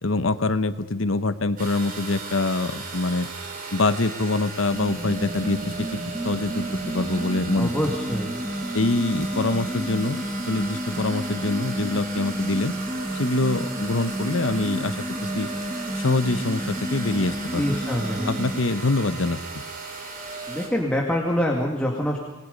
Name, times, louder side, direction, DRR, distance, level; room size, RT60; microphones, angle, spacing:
voice 1, 0.0-3.3 3.7-5.9 6.2-7.7 8.7-12.7 13.1-15.5 16.0-17.7 18.2-19.4, left 2 dB, 85° left, 11 dB, 1.1 m, -25 dB
sound 1, 1.6-20.7, right 3 dB, 45° right, 4.4 m, -36 dB
sound 2, 4.7-18.6, equal, 20° right, 2.0 m, -31 dB
voice 2, 7.6-8.4 17.6-18.3 20.5-22.2, equal, 5° left, -2 dB, 2.4 m, -25 dB
28.0 x 20.5 x 5.4 m, 1.1 s
head